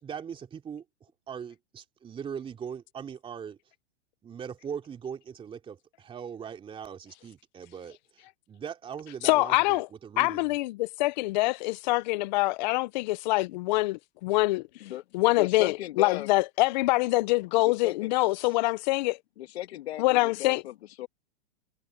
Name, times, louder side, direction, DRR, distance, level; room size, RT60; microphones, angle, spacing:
voice 1, 0.0-3.6 4.2-10.5 18.4-18.6, right 7 dB, 15° right, 3.0 m, -40 dB
voice 2, 9.2-9.9 10.2-14.6 15.1-19.2 20.0-20.6, left 21 dB, 40° left, 0.6 m, -25 dB
voice 3, 15.3-16.3 17.6-18.1 19.4-21.1, left 14 dB, 65° left, 2.3 m, -36 dB
hypercardioid pair, 145°, 34 cm